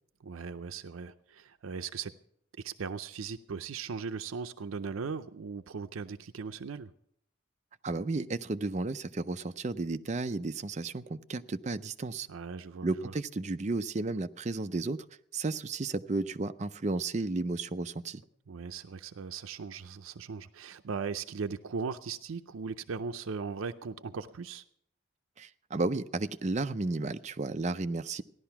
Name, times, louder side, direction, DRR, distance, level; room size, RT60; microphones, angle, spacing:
voice 1, 0.2-2.1 2.6-6.9 12.3-13.1 18.5-24.6, right 5 dB, 90° right, 10 dB, 0.5 m, -38 dB
voice 2, 7.8-12.3 12.8-15.0 15.3-18.2 25.4-28.2, right 3 dB, 35° right, 10 dB, 0.5 m, -33 dB
15.5 x 11.0 x 5.8 m, 0.71 s
head